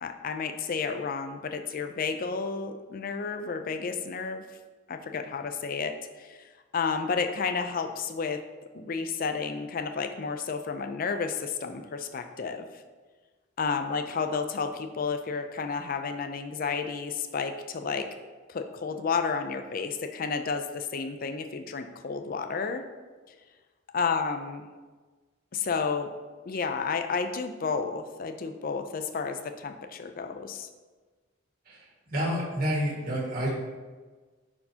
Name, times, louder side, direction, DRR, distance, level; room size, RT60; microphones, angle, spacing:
voice 1, 0.0-4.4 4.9-6.4 6.7-8.4 8.7-12.7 13.6-18.1 18.5-22.8 23.9-24.7 25.5-26.1 26.5-30.7, left 5 dB, 45° left, 7 dB, 0.4 m, -31 dB
voice 2, 32.1-33.5, equal, 45° right, -4 dB, 1.8 m, -28 dB
9.7 x 4.4 x 2.8 m, 1.3 s
head